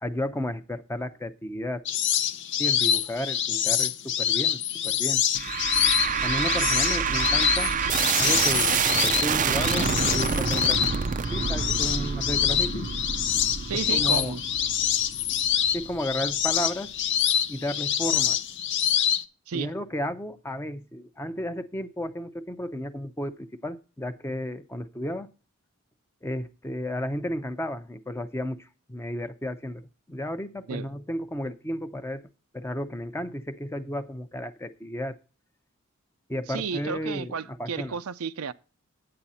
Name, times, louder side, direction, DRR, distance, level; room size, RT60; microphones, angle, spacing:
voice 1, 0.0-1.8 2.6-5.2 6.2-7.7 8.2-10.8 11.3-12.8 13.9-14.4 15.7-16.9 17.5-18.4 19.5-25.3 26.2-29.8 30.1-32.2 32.5-35.2 36.3-38.0, equal, 10° left, 0.7 m, -33 dB
sound 1, 1.9-19.2, left 9 dB, 55° left, 0.6 m, -26 dB
Distorted Explosion, 5.4-16.6, right 6 dB, 35° right, 0.4 m, -27 dB
voice 2, 13.7-14.4 19.5-19.7 30.7-30.9 36.5-38.5, right 6 dB, 85° right, 0.6 m, -32 dB
8.9 x 8.8 x 4.2 m
head